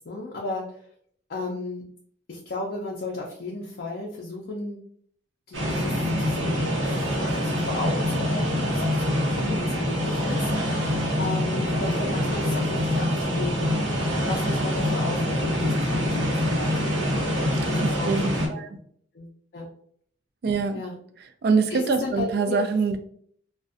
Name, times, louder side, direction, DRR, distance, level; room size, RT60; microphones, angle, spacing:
voice 1, 0.1-0.8 1.3-1.9 2.3-4.8 5.5-5.9 6.2-6.6 6.8-13.7 14.2-18.8 19.1-19.7 20.7-21.0 21.7-22.6, left 2 dB, 50° left, -2 dB, 0.4 m, -34 dB
sound 1, 5.5-18.5, equal, 80° right, 0.7 m, -25 dB
voice 2, 17.8-18.7 20.4-20.8 21.4-23.0, right 4 dB, 55° right, 8 dB, 0.3 m, -24 dB
2.5 x 2.1 x 2.4 m, 0.62 s
head